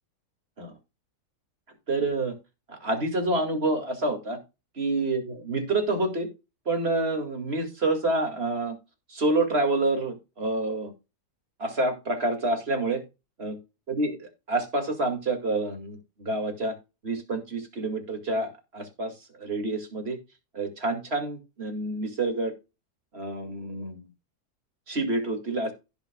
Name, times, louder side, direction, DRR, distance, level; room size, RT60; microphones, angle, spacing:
voice 1, 1.9-2.3 2.7-4.4 4.8-6.3 6.7-8.7 9.1-10.9 11.6-13.0 13.4-13.6 13.9-16.7 17.0-20.2 20.5-22.5 23.1-24.1 24.9-25.7, right 2 dB, 40° right, 5 dB, 2.4 m, -28 dB
16.0 x 5.8 x 2.3 m, 0.27 s
omnidirectional pair, 1.6 m